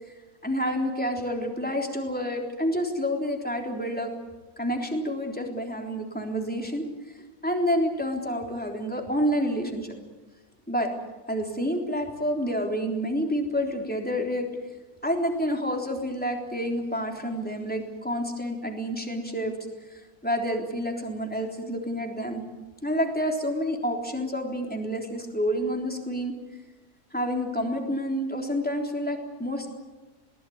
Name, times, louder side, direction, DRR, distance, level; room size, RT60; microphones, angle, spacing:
voice 1, 0.4-4.1 4.6-6.9 7.4-9.9 10.7-10.9 11.3-14.5 15.0-19.6 19.9-22.4 22.8-26.3 27.1-29.7, equal, 5° left, 1 dB, 3.6 m, -28 dB
22.0 x 19.0 x 9.5 m, 1.2 s
omnidirectional pair, 1.6 m